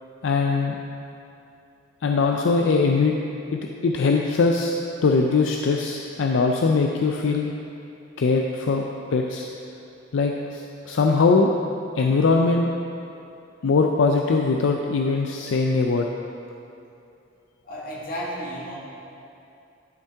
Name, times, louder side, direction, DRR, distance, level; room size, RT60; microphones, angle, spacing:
voice 1, 0.2-0.8 2.0-3.1 3.5-4.7 5.0-7.5 8.2-8.8 9.1-9.5 10.1-11.6 12.0-12.7 13.6-16.1, left 4 dB, 75° left, 2 dB, 0.4 m, -21 dB
voice 2, 17.6-18.8, equal, 50° left, -4 dB, 1.6 m, -32 dB
11.5 x 5.5 x 3.5 m, 2.7 s
head